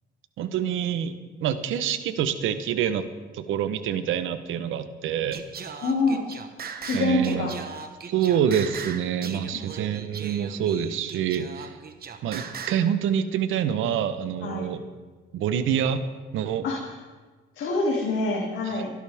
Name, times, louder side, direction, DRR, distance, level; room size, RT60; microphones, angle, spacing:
voice 1, 0.4-1.1 1.4-3.0 3.3-5.4 6.9-7.5 8.1-11.8 12.2-14.8 15.3-16.0 16.3-16.6 18.7-18.8, right 9 dB, 85° right, 11 dB, 1.0 m, -26 dB
Singing, 5.3-12.9, right 6 dB, 50° right, 1.3 m, -39 dB
voice 2, 5.8-6.4 6.8-7.6 9.5-9.9 14.4-14.7 16.6-16.8 17.5-18.9, left 2 dB, 75° left, -4 dB, 2.8 m, -26 dB
25.5 x 11.5 x 3.6 m, 1.4 s
cardioid pair, 90°, 20 cm